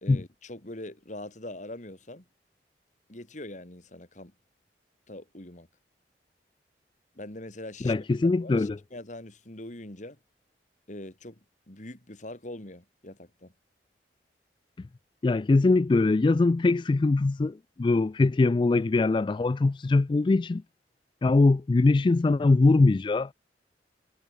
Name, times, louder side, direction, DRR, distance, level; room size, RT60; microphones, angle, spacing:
voice 1, 0.0-2.2 3.1-4.3 5.1-5.7 7.1-7.9 8.2-10.2 10.9-11.4 11.7-13.5, left 1 dB, 45° left, 2.8 m, -42 dB
voice 2, 7.8-8.8 15.2-20.6 21.2-23.3, left 3 dB, 25° left, 0.3 m, -22 dB
head